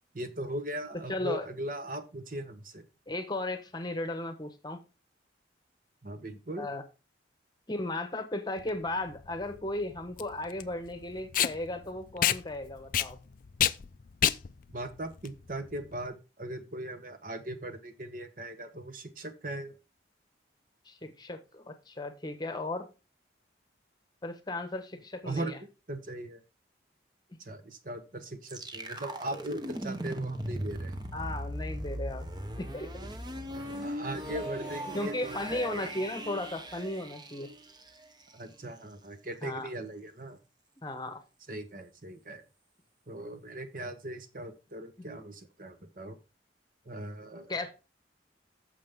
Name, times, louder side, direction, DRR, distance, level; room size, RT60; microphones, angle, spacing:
voice 1, 0.1-2.8 6.0-6.7 14.7-19.7 25.2-25.5 25.9-26.4 27.4-30.9 33.8-35.9 38.3-40.4 41.5-42.4 43.1-46.2 46.9-47.5, right 1 dB, 45° right, 1.0 m, -39 dB
voice 2, 1.1-1.5 3.1-4.8 6.6-6.8 7.7-13.2 20.8-22.9 24.2-25.6 31.1-32.2 32.6-33.1 34.9-37.5 39.4-39.7 40.8-41.2 45.0-45.1 47.5-47.7, left 2 dB, 20° left, 1.0 m, -35 dB
Packing tape duct tape, 8.6-16.1, left 11 dB, 45° left, 0.4 m, -30 dB
sound 1, 28.5-38.3, right 1 dB, 25° right, 0.8 m, -38 dB
sound 2, 33.5-36.9, right 1 dB, 75° right, 3.8 m, -51 dB
9.2 x 6.8 x 3.6 m
head